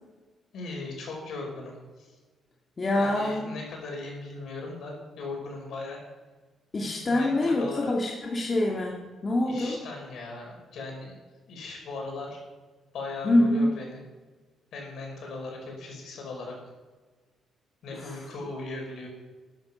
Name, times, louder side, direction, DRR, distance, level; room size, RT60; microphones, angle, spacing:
voice 1, 0.5-2.2 3.0-6.0 7.0-7.9 9.5-11.2 11.5-12.4 12.9-14.0 14.7-16.6 17.8-19.1, left 3 dB, 70° left, 0 dB, 5.2 m, -38 dB
voice 2, 2.8-3.5 6.7-9.8 13.2-13.7 17.9-18.3, left 1 dB, 35° left, -1 dB, 2.1 m, -25 dB
13.0 x 10.5 x 5.6 m, 1.3 s
cardioid pair, 90°, 0 cm